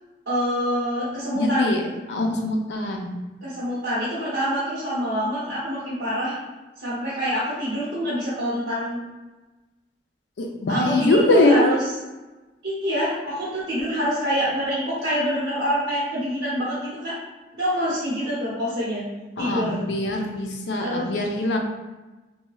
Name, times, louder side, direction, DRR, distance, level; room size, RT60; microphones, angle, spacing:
voice 1, 0.3-1.7 3.4-6.3 6.8-9.0 10.7-11.8 12.6-17.2 17.5-19.0 19.4-19.8 20.8-21.1, equal, 80° right, -9 dB, 0.9 m, -26 dB
voice 2, 1.3-1.8 2.1-3.2 10.4-11.7 19.4-21.6, left 2 dB, 80° left, 2 dB, 0.4 m, -22 dB
2.7 x 2.2 x 3.0 m, 1.2 s
head